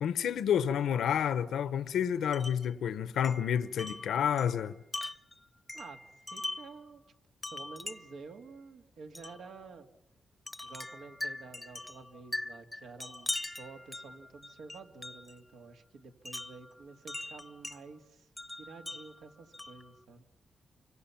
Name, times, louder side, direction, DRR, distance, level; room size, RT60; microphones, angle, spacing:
voice 1, 0.0-4.8, left 8 dB, 85° left, 0.8 m, -29 dB
Wind chime, 2.3-2.7 3.2-6.8 7.4-8.3 9.1-9.4 10.5-15.4 16.3-17.8 18.4-19.9, left 2 dB, 10° left, 0.8 m, -41 dB
voice 2, 6.3-7.0 7.5-9.9 10.6-18.3 18.6-20.2, right 4 dB, 80° right, 2.2 m, -50 dB
28.5 x 25.0 x 5.8 m
cardioid pair, 90°, 0 cm